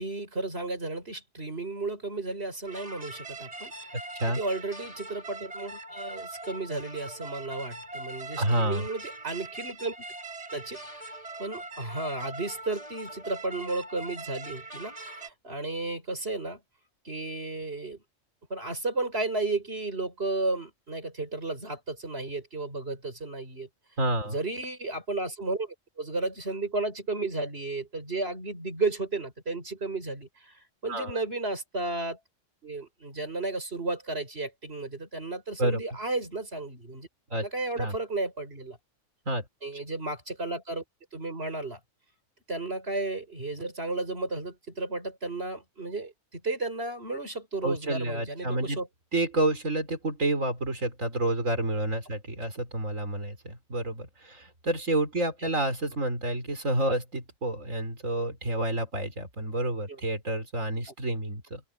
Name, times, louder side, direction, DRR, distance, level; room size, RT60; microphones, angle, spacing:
voice 1, 0.0-4.0 4.3-10.0 10.5-16.6 17.0-18.0 18.5-23.7 24.3-32.2 32.6-37.1 37.4-38.8 39.6-40.8 41.1-41.8 42.5-48.9 55.4-55.5 59.9-60.0, right 2 dB, 50° right, 6.1 m, -33 dB
sound 1, 2.7-15.3, right 2 dB, 30° right, 5.2 m, -42 dB
voice 2, 8.4-8.8 24.0-24.4 30.9-31.2 35.6-35.8 37.3-37.5 37.8-38.0 39.3-39.4 47.6-48.8 49.1-61.6, right 1 dB, 90° right, 4.8 m, -29 dB
open air
omnidirectional pair, 1.3 m